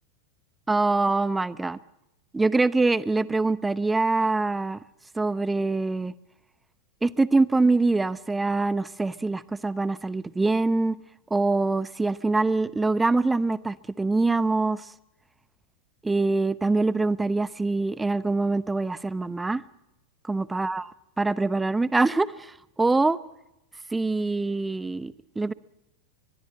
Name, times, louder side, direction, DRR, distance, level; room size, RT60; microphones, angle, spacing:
voice 1, 0.7-1.8 2.3-4.8 5.2-6.1 7.0-11.0 11.3-14.8 16.0-19.6 20.3-20.9 21.2-22.5 22.8-23.2 23.9-25.5, right 3 dB, 10° right, 19 dB, 0.8 m, -24 dB
23.0 x 22.5 x 7.5 m, 0.93 s
figure-of-eight pair, 90°, 0 cm